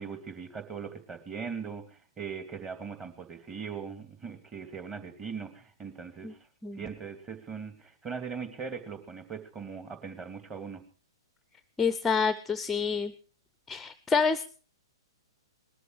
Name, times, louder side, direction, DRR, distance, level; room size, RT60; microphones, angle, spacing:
voice 1, 0.0-6.4 6.8-10.8, right 6 dB, 15° right, 9 dB, 2.7 m, -40 dB
voice 2, 11.8-13.1 13.7-14.6, left 5 dB, 10° left, 15 dB, 0.7 m, -28 dB
20.0 x 13.0 x 4.8 m, 0.39 s
figure-of-eight pair, 115°, 2 cm